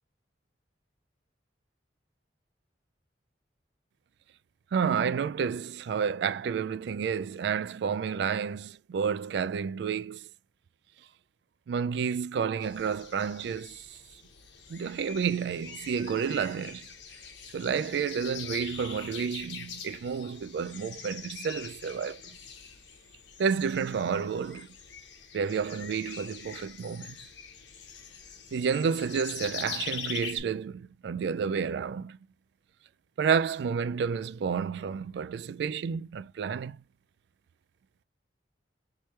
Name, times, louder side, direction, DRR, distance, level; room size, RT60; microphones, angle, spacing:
voice 1, 4.7-10.3 11.7-14.0 14.7-16.9 17.5-22.4 23.4-24.7 25.3-27.2 28.5-32.2 33.2-36.8, right 6 dB, 60° right, 0.3 m, -30 dB
sound 1, 12.6-30.4, left 6 dB, 70° left, 1.2 m, -43 dB
4.4 x 3.2 x 3.2 m
head